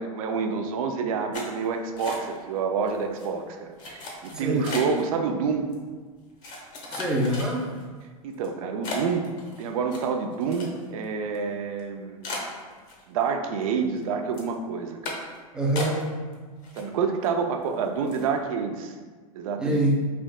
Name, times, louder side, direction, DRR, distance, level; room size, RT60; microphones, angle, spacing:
voice 1, 0.0-5.7 8.2-9.3 9.6-12.2 13.1-15.1 16.7-18.9 19.3-19.9, right 5 dB, 65° right, 5 dB, 0.4 m, -28 dB
sound 1, 1.3-2.6 2.9-3.3 3.8-5.1 5.7-5.8 6.4-7.8 8.3-8.5 8.8-11.0 11.3-11.4 11.8-11.9 12.2-13.3 13.6-14.0 14.3-14.5 15.0-15.4 15.8-16.3 16.6-17.3 17.6-17.7 18.1-18.3, left 2 dB, 40° left, 0.8 m, -36 dB
voice 2, 4.3-4.7 6.9-7.7 15.5-16.0 19.6-20.0, right 1 dB, 5° right, -2 dB, 0.5 m, -25 dB
3.3 x 2.6 x 2.2 m, 1.4 s
hypercardioid pair, 110°, 19 cm